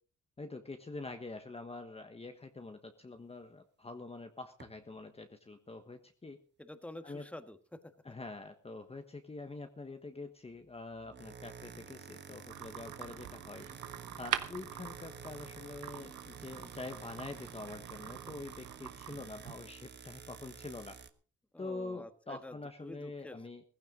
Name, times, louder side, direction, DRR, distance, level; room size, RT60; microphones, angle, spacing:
voice 1, 0.4-6.4 7.0-7.3 8.0-13.7 14.2-21.0 21.6-23.6, left 3 dB, 20° left, 6 dB, 1.3 m, -45 dB
sound 1, 4.6-4.8 10.9-21.1, right 6 dB, 35° right, 1.3 m, -51 dB
voice 2, 6.6-7.9 21.5-22.5 22.8-23.4, left 1 dB, 5° left, 9 dB, 1.6 m, -48 dB
sound 2, 12.5-19.5, right 12 dB, 80° right, 1.3 m, -44 dB
16.5 x 15.5 x 3.9 m, 0.40 s
cardioid pair, 90°, 30 cm